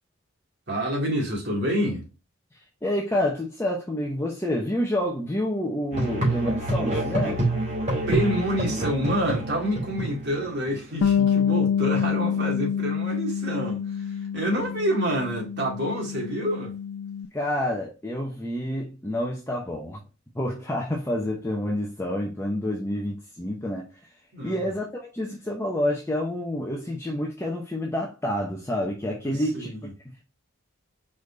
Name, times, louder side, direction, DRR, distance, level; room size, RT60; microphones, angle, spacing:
voice 1, 0.7-2.0 8.1-13.8 14.3-16.7 24.3-24.5 29.2-29.8, right 1 dB, 55° right, 2.4 m, -27 dB
voice 2, 2.8-7.6 17.3-20.0 20.3-24.1 24.4-29.7 30.0-30.2, left 1 dB, 10° left, 0.8 m, -28 dB
Musical instrument, 5.9-10.7, right 1 dB, 35° right, 2.4 m, -27 dB
Bass guitar, 11.0-17.3, left 7 dB, 80° left, 0.4 m, -27 dB
4.9 x 4.1 x 2.6 m
head